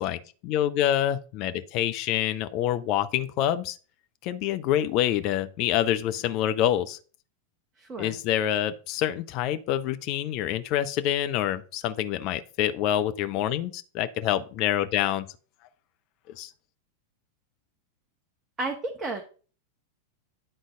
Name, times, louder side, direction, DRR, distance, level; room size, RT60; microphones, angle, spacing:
voice 1, 0.0-3.8 4.2-7.0 8.0-15.3 16.3-16.5, left 11 dB, 40° left, 0.7 m, -26 dB
voice 2, 7.8-8.1 18.6-19.2, right 2 dB, 20° right, 1.3 m, -32 dB
9.9 x 3.9 x 4.9 m
figure-of-eight pair, 90°, 0 cm